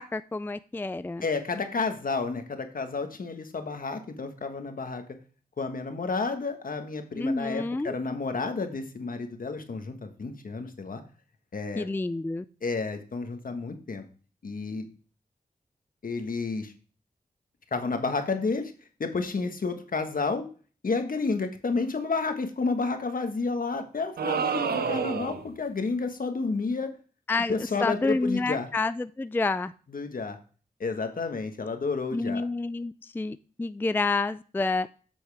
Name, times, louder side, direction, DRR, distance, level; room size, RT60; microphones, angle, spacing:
voice 1, 0.0-1.2 7.2-7.9 11.8-12.4 27.3-27.5 27.8-29.7 32.1-34.9, left 3 dB, 15° left, 0.3 m, -29 dB
voice 2, 1.2-5.0 5.6-11.0 11.5-11.9 12.6-14.0 14.4-14.9 16.0-16.7 17.7-18.7 19.0-20.4 20.8-26.9 27.5-28.7 29.9-30.4 30.8-32.4, left 4 dB, 60° left, 1.4 m, -31 dB
sound 1, 24.2-25.5, right 6 dB, 80° right, 0.7 m, -28 dB
8.5 x 6.2 x 3.4 m
cardioid pair, 40°, 16 cm